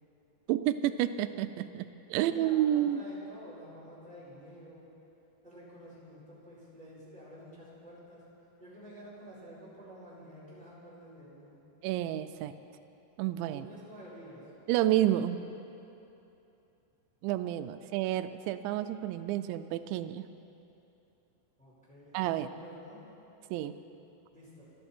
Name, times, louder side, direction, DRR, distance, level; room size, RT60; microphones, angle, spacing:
voice 1, 0.5-3.0 11.8-12.5 13.2-13.7 14.7-15.4 17.2-20.3 22.1-22.5 23.5-23.8, right 12 dB, 85° right, 10 dB, 2.9 m, -30 dB
voice 2, 2.1-4.9 5.4-8.2 8.6-11.5 13.5-14.4 21.6-23.0 24.3-24.6, equal, ahead, -8 dB, 4.4 m, -50 dB
28.5 x 11.0 x 4.4 m, 2.9 s
omnidirectional pair, 5.2 m